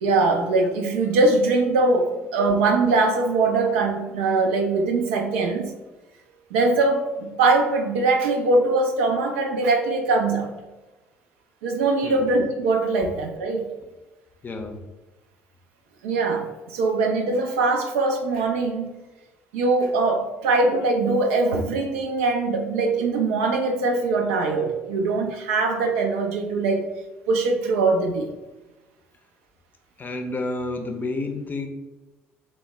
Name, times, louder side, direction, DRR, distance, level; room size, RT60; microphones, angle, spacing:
voice 1, 0.0-5.7 6.5-10.5 11.6-13.7 16.0-18.9 19.5-26.8 27.3-28.3, right 3 dB, 75° right, 3 dB, 0.4 m, -22 dB
voice 2, 14.4-14.9 30.0-31.7, left 2 dB, 30° left, 5 dB, 0.5 m, -30 dB
3.3 x 2.1 x 3.1 m, 1.1 s
figure-of-eight pair, 55°, 7 cm